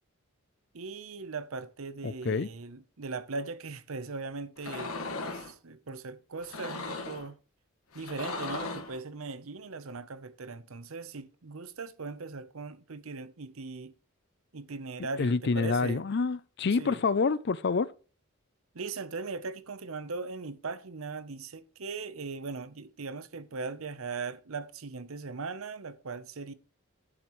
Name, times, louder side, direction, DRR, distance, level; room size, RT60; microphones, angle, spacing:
voice 1, 0.7-7.4 7.9-13.9 14.5-16.0 16.8-17.0 18.7-26.5, right 4 dB, 75° right, 0.8 m, -39 dB
voice 2, 2.0-2.5 15.2-17.9, left 4 dB, 50° left, 0.5 m, -27 dB
sound 1, 4.6-5.5 6.4-7.3 7.9-9.0, left 3 dB, 80° left, 1.7 m, -37 dB
10.0 x 7.3 x 3.1 m
head